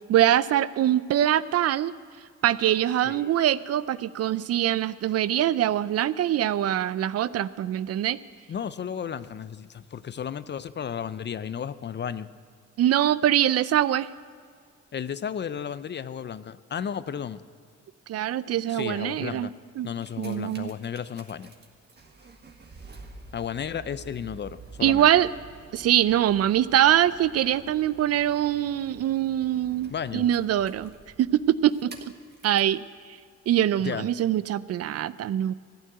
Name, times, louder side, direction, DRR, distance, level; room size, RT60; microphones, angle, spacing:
voice 1, 0.1-1.9 2.4-8.2 12.8-14.1 18.1-19.5 19.8-19.9 20.2-20.7 24.8-25.3 25.7-30.9 31.2-31.9 32.4-32.8 33.5-35.5, right 11 dB, 55° right, 17 dB, 0.4 m, -23 dB
voice 2, 3.0-3.5 8.5-12.3 14.9-17.4 18.7-19.5 19.8-21.5 23.3-25.1 29.9-30.3 33.8-34.1, left 8 dB, 35° left, 15 dB, 0.5 m, -33 dB
sound 1, 19.8-32.8 33.5-33.6, right 4 dB, 35° right, 1.7 m, -49 dB
14.5 x 9.4 x 7.9 m, 2.1 s
cardioid pair, 90°, 30 cm